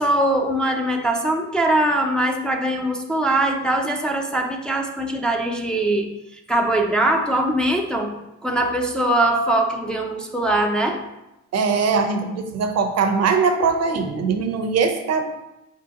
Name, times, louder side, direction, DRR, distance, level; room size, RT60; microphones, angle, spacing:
voice 1, 0.0-6.1 6.5-8.1 8.4-11.0, right 1 dB, 5° left, 1 dB, 0.5 m, -21 dB
voice 2, 11.5-15.2, right 5 dB, 55° right, 6 dB, 0.7 m, -21 dB
5.0 x 3.7 x 2.8 m, 0.93 s
cardioid pair, 90°, 30 cm